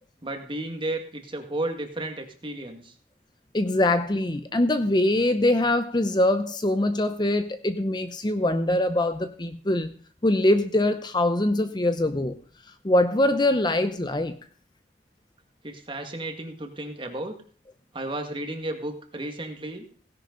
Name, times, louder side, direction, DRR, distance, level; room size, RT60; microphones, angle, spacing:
voice 1, 0.2-2.9 15.6-17.3 17.9-19.9, right 1 dB, 30° right, 5 dB, 1.9 m, -33 dB
voice 2, 3.5-9.9 10.2-12.4 12.8-14.4, left 1 dB, 25° left, 9 dB, 0.7 m, -23 dB
17.0 x 10.5 x 3.9 m, 0.43 s
head